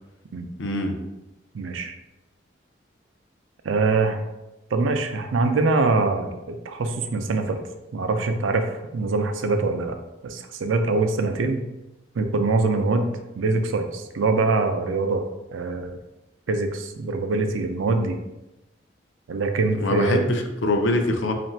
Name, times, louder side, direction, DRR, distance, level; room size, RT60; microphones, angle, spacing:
voice 1, 0.6-1.0 19.8-21.3, left 1 dB, 70° left, 4 dB, 0.5 m, -23 dB
voice 2, 1.5-1.9 3.6-4.2 4.7-7.6 7.9-10.0 10.2-11.6 12.1-13.1 13.3-15.3 15.5-16.0 16.5-18.2 19.3-20.2, right 3 dB, 80° right, 6 dB, 0.4 m, -23 dB
3.1 x 2.5 x 4.4 m, 0.98 s
head